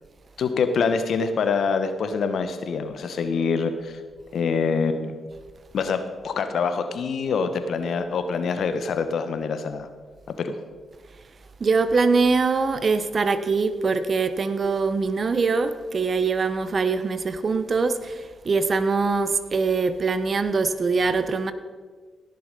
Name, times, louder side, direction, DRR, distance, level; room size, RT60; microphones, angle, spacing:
voice 1, 0.4-4.0 4.3-5.2 5.7-9.9 10.4-10.5, left 5 dB, 70° left, 9 dB, 1.1 m, -25 dB
voice 2, 11.6-21.5, right 4 dB, 50° right, 11 dB, 1.0 m, -23 dB
17.5 x 6.8 x 5.3 m, 1.5 s
supercardioid pair, 50°, 0 cm